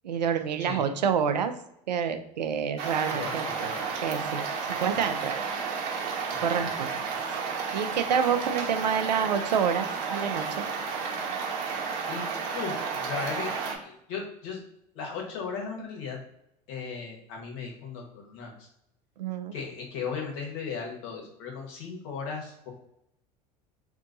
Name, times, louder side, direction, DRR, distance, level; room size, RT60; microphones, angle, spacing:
voice 1, 0.0-1.5 1.9-3.7 4.0-4.5 4.8-5.4 6.4-6.9 7.7-10.6 19.2-19.5, right 7 dB, 90° right, 8 dB, 0.5 m, -28 dB
sound 1, 2.8-13.8, right 5 dB, 60° right, 1.0 m, -32 dB
voice 2, 3.1-3.9 6.3-6.4 12.0-13.5 13.8-14.6 14.9-16.2 16.7-18.7 19.5-22.7, left 5 dB, 60° left, 0 dB, 1.3 m, -36 dB
2.7 x 2.6 x 3.9 m, 0.79 s
hypercardioid pair, 80°, 21 cm